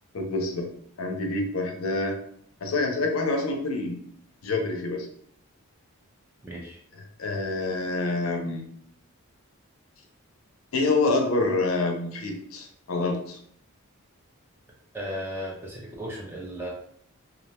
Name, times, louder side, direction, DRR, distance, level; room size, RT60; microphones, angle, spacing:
voice 1, 0.1-0.7 1.0-2.2 2.6-4.0 4.4-5.1 6.9-8.7 10.7-13.4, left 3 dB, 70° left, 3 dB, 0.5 m, -27 dB
voice 2, 6.4-6.8 14.9-16.7, equal, 10° right, -3 dB, 0.4 m, -35 dB
2.3 x 2.2 x 2.9 m, 0.64 s
head